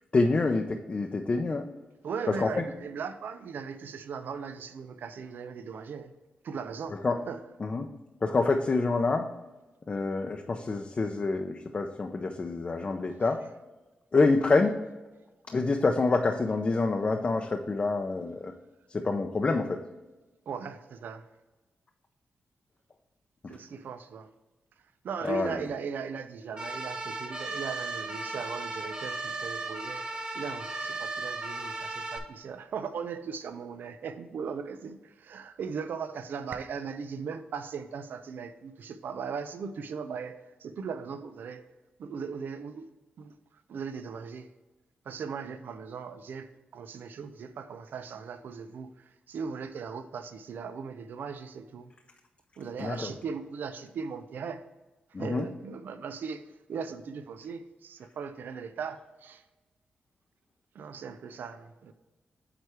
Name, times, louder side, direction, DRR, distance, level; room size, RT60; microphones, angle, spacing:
voice 1, 0.1-1.7 2.4-2.5 7.0-7.2 7.6-7.9 8.2-9.3 9.9-13.4 14.1-14.8 15.5-18.5 18.9-19.8 25.2-25.6 52.8-53.1 55.1-55.5, left 3 dB, 40° left, 4 dB, 0.6 m, -27 dB
voice 2, 2.0-6.1 6.4-7.0 7.3-7.4 20.5-21.2 23.5-24.3 25.0-41.7 42.0-42.8 43.2-43.4 43.7-44.5 45.0-51.9 52.6-54.6 55.2-56.4 56.7-59.4 60.7-61.9, right 6 dB, 75° right, 11 dB, 0.5 m, -38 dB
sound 1, 26.6-32.2, right 3 dB, 30° right, 1.1 m, -36 dB
8.8 x 3.3 x 4.7 m, 1.1 s
cardioid pair, 75°, 3 cm